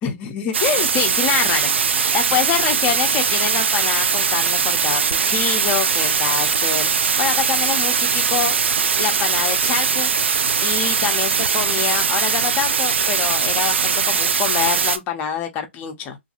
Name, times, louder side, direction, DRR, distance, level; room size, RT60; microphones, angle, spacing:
voice 1, 0.0-6.9 7.2-8.6 9.0-10.1 10.6-16.2, left 8 dB, 25° left, 0.6 m, -25 dB
sound 1, 0.5-15.0, right 6 dB, 65° right, 0.4 m, -20 dB
2.5 x 2.2 x 2.8 m
figure-of-eight pair, 125°, 7 cm